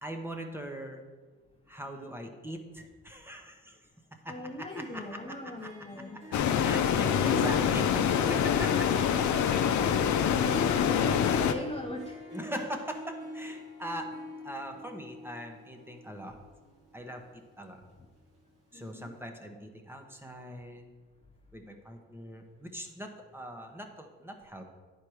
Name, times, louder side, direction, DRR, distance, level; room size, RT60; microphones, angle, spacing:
voice 1, 0.0-1.0 1.7-3.8 4.2-5.2 5.6-5.7 6.6-8.9 9.3-9.4 12.3-14.1 14.4-16.4 16.9-17.8 18.7-20.9 21.5-24.6, equal, 5° right, 4 dB, 1.0 m, -41 dB
voice 2, 4.3-6.4 7.3-7.5 10.3-12.2 14.7-14.8 18.7-19.1 20.5-20.6, left 2 dB, 20° left, 1 dB, 0.7 m, -38 dB
Harp, 4.5-18.5, left 1 dB, 50° right, 1.5 m, -46 dB
sound 1, 6.3-11.5, left 8 dB, 70° left, 0.7 m, -26 dB
10.0 x 4.6 x 4.8 m, 1.4 s
cardioid pair, 90°, 30 cm